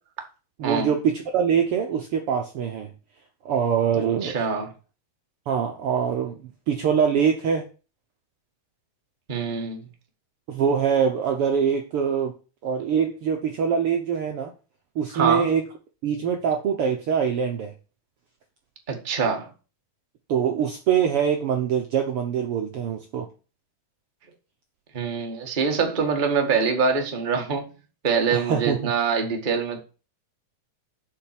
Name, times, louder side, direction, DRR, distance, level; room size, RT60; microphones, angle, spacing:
voice 1, 0.6-2.9 3.4-4.4 5.5-6.4 6.7-7.6 10.5-12.3 12.6-14.5 14.9-15.6 16.0-17.7 20.3-23.3 28.3-28.9, right 7 dB, 60° right, 1.6 m, -23 dB
voice 2, 4.0-4.7 9.3-9.8 15.1-15.5 18.9-19.5 24.9-27.7 28.0-29.8, right 5 dB, 20° right, 1.3 m, -24 dB
7.6 x 5.8 x 7.5 m
omnidirectional pair, 3.5 m